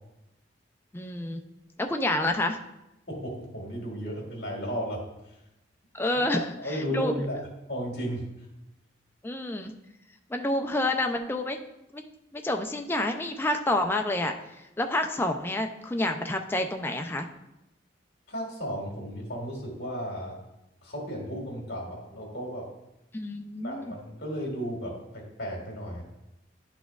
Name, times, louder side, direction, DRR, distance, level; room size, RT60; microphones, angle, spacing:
voice 1, 0.9-1.4 1.8-2.6 5.9-6.4 6.7-7.1 9.2-9.7 10.3-11.6 11.9-12.0 12.3-14.3 14.8-17.3 23.1-24.0, left 1 dB, 10° left, 4 dB, 0.4 m, -28 dB
voice 2, 3.1-5.0 5.3-5.4 6.1-7.4 7.7-8.2 18.3-20.4 20.8-22.7 23.6-26.0, equal, 60° left, -1 dB, 1.7 m, -34 dB
10.5 x 4.2 x 2.3 m, 0.92 s
head